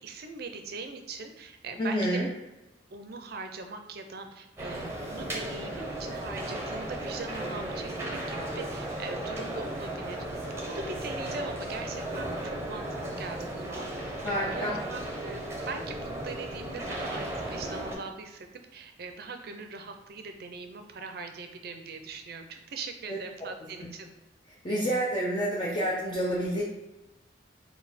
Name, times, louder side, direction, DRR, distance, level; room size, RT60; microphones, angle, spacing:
voice 1, 0.0-2.2 2.9-10.2 10.7-18.5 18.7-24.1, right 4 dB, 55° right, 6 dB, 0.5 m, -41 dB
voice 2, 1.8-2.3 14.2-14.8 23.1-23.2 23.8-23.9 24.5-26.6, equal, 25° left, -4 dB, 0.5 m, -29 dB
sound 1, 4.6-17.9, right 1 dB, 15° right, 0.7 m, -35 dB
4.1 x 2.2 x 4.1 m, 1.0 s
head